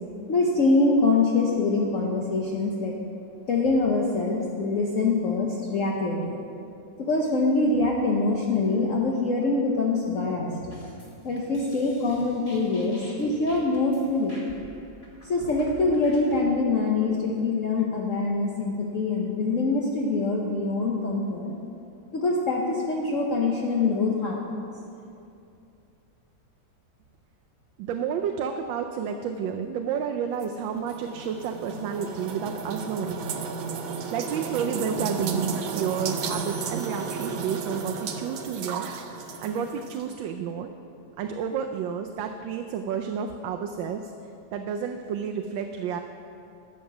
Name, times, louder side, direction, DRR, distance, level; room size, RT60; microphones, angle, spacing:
voice 1, 0.3-2.9 3.5-6.4 7.0-10.5 11.2-14.4 15.2-21.5 22.1-24.4, left 3 dB, 50° left, -2 dB, 1.1 m, -24 dB
sound 1, 10.7-16.4, right 1 dB, 15° left, 1.7 m, -48 dB
voice 2, 27.8-33.2 34.1-38.9 39.4-40.7 41.2-44.1 44.5-46.0, right 7 dB, 90° right, 4 dB, 1.3 m, -30 dB
sound 2, 30.4-40.0, right 5 dB, 70° right, 1.4 m, -33 dB
sound 3, 36.3-39.5, right 2 dB, 70° left, 3.0 m, -48 dB
12.5 x 7.5 x 5.9 m, 2.6 s
omnidirectional pair, 2.0 m